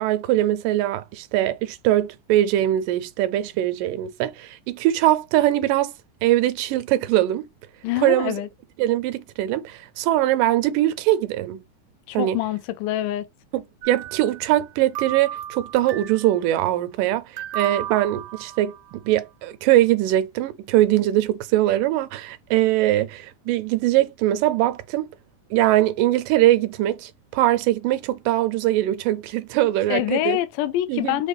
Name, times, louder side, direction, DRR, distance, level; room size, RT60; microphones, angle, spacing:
voice 1, 0.0-5.9 6.2-7.5 8.0-8.3 8.8-11.6 12.1-12.4 13.5-25.1 25.5-30.4 30.9-31.2, right 14 dB, 85° right, 2.3 m, -22 dB
voice 2, 7.8-8.5 12.1-13.3 29.9-31.3, left 14 dB, 85° left, 2.1 m, -25 dB
sound 1, 13.8-14.7 14.9-16.4 17.4-19.0, right 11 dB, 70° right, 1.3 m, -34 dB
5.8 x 2.5 x 3.3 m
omnidirectional pair, 3.7 m